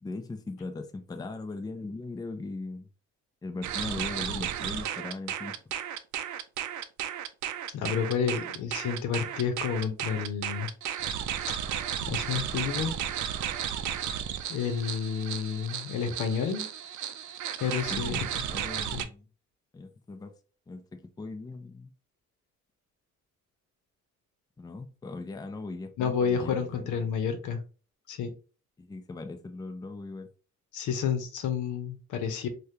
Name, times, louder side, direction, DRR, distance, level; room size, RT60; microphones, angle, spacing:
voice 1, 0.0-2.9 3.4-5.5 17.9-19.3 19.7-20.3 20.7-21.9 24.6-27.0 28.8-30.3, left 3 dB, 15° left, 0.4 m, -39 dB
sound 1, 3.6-19.1, right 9 dB, 70° right, 0.5 m, -34 dB
voice 2, 7.7-10.7 11.5-11.6 12.0-12.9 14.5-16.7 17.6-18.2 18.9-19.0 26.0-27.6 28.1-28.3 30.7-32.5, left 7 dB, 80° left, 0.8 m, -30 dB
3.4 x 2.3 x 2.7 m
cardioid pair, 90°, 30 cm